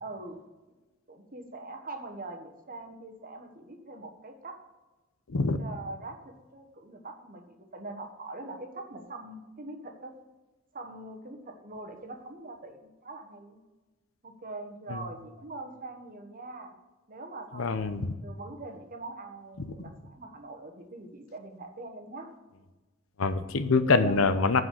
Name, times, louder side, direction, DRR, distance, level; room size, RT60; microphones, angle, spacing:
voice 1, 0.0-0.4 1.1-4.6 5.6-10.1 10.7-13.6 14.2-16.7 17.1-22.3 24.0-24.5, right 2 dB, 45° right, 5 dB, 1.2 m, -43 dB
voice 2, 5.3-5.6 14.9-15.0 17.6-18.1 19.6-19.7 23.2-24.6, left 4 dB, 85° left, 11 dB, 0.7 m, -25 dB
7.3 x 6.4 x 7.4 m, 1.2 s
head